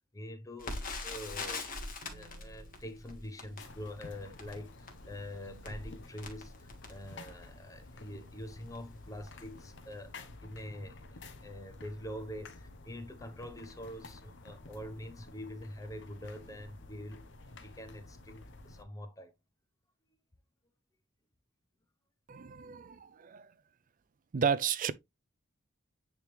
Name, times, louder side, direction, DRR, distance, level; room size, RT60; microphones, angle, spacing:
voice 1, 0.1-1.7 2.1-17.3 17.6-19.3, left 1 dB, 15° left, 0.8 m, -45 dB
Crackle, 0.6-7.6 8.2-8.3 8.6-8.8 9.4-9.7 9.9-10.0, left 3 dB, 40° left, 1.8 m, -43 dB
sound 1, 2.0-5.2, right 4 dB, 80° right, 1.2 m, -64 dB
sound 2, 3.6-18.8, left 2 dB, 60° left, 0.9 m, -51 dB
voice 2, 22.3-23.5 24.3-24.9, right 7 dB, 40° right, 0.4 m, -32 dB
9.3 x 3.5 x 3.2 m
head